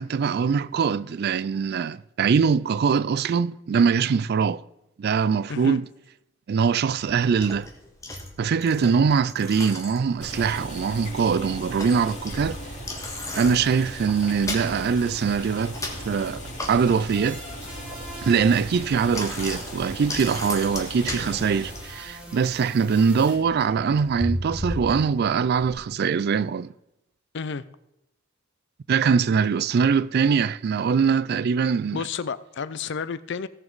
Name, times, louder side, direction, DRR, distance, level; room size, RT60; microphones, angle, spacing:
voice 1, 0.0-4.6 5.0-5.8 6.5-7.7 8.4-12.6 13.3-15.8 16.0-16.4 16.7-17.4 18.2-26.7 28.9-32.0, right 6 dB, 50° right, 0.3 m, -22 dB
Bicycle, 6.9-25.8, left 1 dB, 15° left, 1.6 m, -37 dB
Boiling, 10.2-22.0, equal, 40° left, 3.8 m, -38 dB
sound 1, 17.1-23.4, right 1 dB, 5° right, 2.3 m, -44 dB
voice 2, 27.3-27.6 31.9-33.5, left 5 dB, 60° left, 0.5 m, -31 dB
17.0 x 7.0 x 4.0 m
head